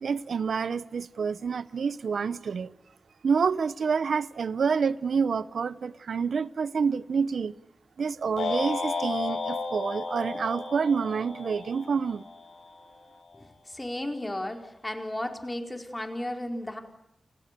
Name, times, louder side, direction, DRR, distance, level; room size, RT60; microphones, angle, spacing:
voice 1, 0.0-2.7 3.2-7.5 8.0-12.2, right 5 dB, 85° right, 1.0 m, -28 dB
sound 1, 8.4-12.7, left 4 dB, 90° left, 7.3 m, -33 dB
voice 2, 13.3-16.8, left 1 dB, 15° left, 4.8 m, -34 dB
29.5 x 28.5 x 7.0 m
wide cardioid pair, 105°, 0 cm